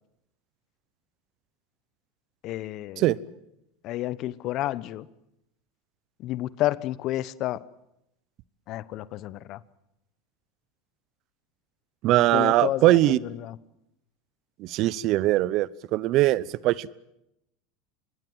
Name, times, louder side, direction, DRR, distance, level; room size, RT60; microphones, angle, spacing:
voice 1, 2.4-3.1 3.8-5.1 6.2-7.6 8.7-9.6 12.3-13.6, left 15 dB, 50° left, 0.9 m, -30 dB
voice 2, 12.0-13.2 14.6-16.9, right 16 dB, 55° right, 0.8 m, -21 dB
26.0 x 21.0 x 7.9 m
hypercardioid pair, 100°, 0 cm